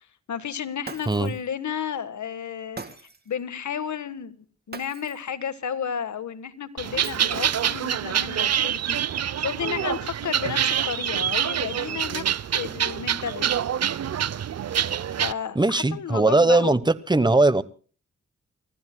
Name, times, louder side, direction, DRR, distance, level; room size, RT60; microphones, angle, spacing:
voice 1, 0.3-2.8 3.3-12.2 12.5-13.4 15.2-16.8, left 7 dB, 75° left, 12 dB, 1.5 m, -32 dB
Shatter, 0.8-1.5 2.8-3.3 4.7-5.3 7.0-7.7, right 3 dB, 35° right, 2.0 m, -41 dB
sound 1, 6.8-15.3, right 9 dB, 60° right, 0.7 m, -26 dB
voice 2, 15.5-16.8 17.1-17.6, right 2 dB, 15° right, 16 dB, 1.1 m, -19 dB
30.0 x 15.5 x 2.3 m, 0.39 s
cardioid pair, 70°, 29 cm